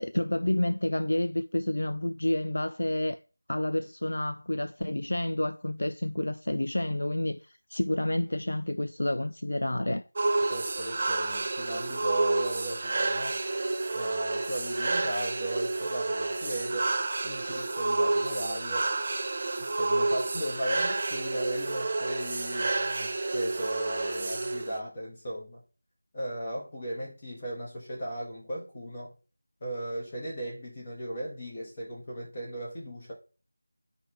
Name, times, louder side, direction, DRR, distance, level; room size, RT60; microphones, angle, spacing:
voice 1, 0.0-3.2 3.5-10.0 24.0-24.2, left 1 dB, 80° left, 0.4 m, -29 dB
sound 1, 10.2-24.8, right 2 dB, 30° right, 0.6 m, -30 dB
voice 2, 10.5-13.4 13.9-16.9 17.2-18.9 19.6-25.6 26.1-29.1 29.6-33.1, right 1 dB, 20° left, 1.5 m, -36 dB
9.8 x 5.0 x 3.3 m
figure-of-eight pair, 175°, 0 cm